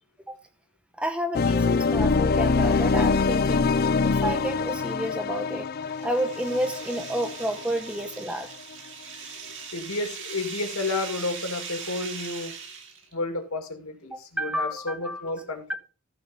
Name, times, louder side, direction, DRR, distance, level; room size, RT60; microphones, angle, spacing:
voice 1, 1.0-3.7 4.0-5.7 6.0-8.5 14.1-15.3 15.7-15.8, equal, 5° right, 0.8 m, -30 dB
sound 1, 1.3-8.2, left 4 dB, 45° left, 0.4 m, -24 dB
sound 2, 5.4-13.1, right 6 dB, 55° right, 2.7 m, -40 dB
voice 2, 9.7-12.5 13.1-15.7, left 2 dB, 75° left, 2.3 m, -31 dB
14.5 x 4.8 x 5.5 m
head